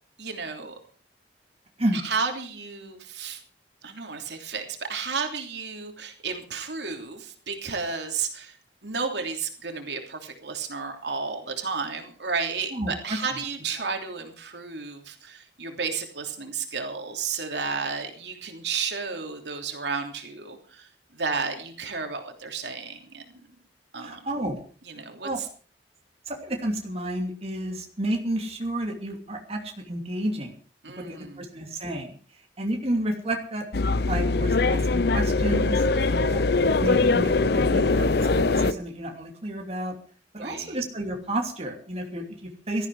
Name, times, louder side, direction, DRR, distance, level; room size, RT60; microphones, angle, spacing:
voice 1, 0.2-0.7 1.9-3.4 3.8-8.6 8.8-23.2 23.9-24.3 24.8-25.5 30.8-31.5 35.9-36.5 40.4-40.8, right 5 dB, 75° right, 4 dB, 3.1 m, -32 dB
voice 2, 12.7-13.2 24.0-24.6 25.2-25.4 26.3-30.5 31.1-32.2 32.6-33.6 34.1-35.8 36.2-36.5 36.8-40.0 40.3-42.9, right 1 dB, 35° right, 2 dB, 2.9 m, -31 dB
sound 1, 33.7-38.7, left 3 dB, 65° left, 0.7 m, -22 dB
17.5 x 13.5 x 4.8 m, 0.41 s
head